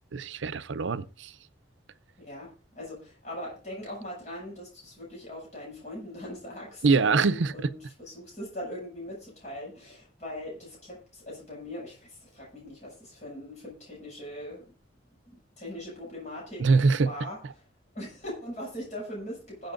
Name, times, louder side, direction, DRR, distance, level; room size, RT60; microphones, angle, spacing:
voice 1, 0.1-1.3 6.8-7.7 16.6-17.1, right 4 dB, 85° right, 0.6 m, -24 dB
voice 2, 2.2-14.6 15.3-16.6 17.0-17.4 17.9-19.7, left 1 dB, 40° left, 6.7 m, -40 dB
21.0 x 7.8 x 2.5 m
head